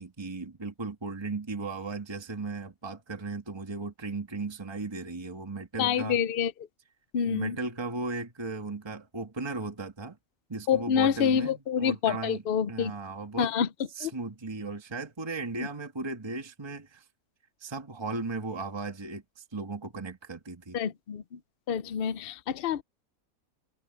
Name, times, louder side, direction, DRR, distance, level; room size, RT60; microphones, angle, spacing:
voice 1, 0.0-6.2 7.3-10.2 10.5-12.4 12.7-13.5 14.0-17.0 17.6-20.8, right 3 dB, 20° right, 1.6 m, -36 dB
voice 2, 5.8-6.5 7.1-7.6 10.7-12.9 13.4-13.7 14.0-14.1 20.7-21.4 21.7-22.8, left 8 dB, 50° left, 0.8 m, -27 dB
omnidirectional pair, 1.5 m